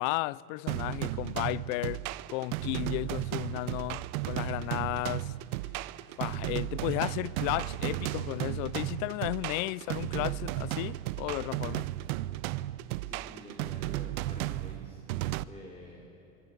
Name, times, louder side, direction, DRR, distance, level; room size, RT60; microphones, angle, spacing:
voice 1, 0.0-2.0 2.3-5.3 6.2-11.9, left 22 dB, 70° left, 0.6 m, -34 dB
sound 1, 0.7-15.4, right 16 dB, 85° right, 0.7 m, -34 dB
voice 2, 13.0-15.0 15.4-16.0, equal, 15° left, 3.6 m, -49 dB
25.0 x 22.0 x 8.0 m
supercardioid pair, 120°, 41 cm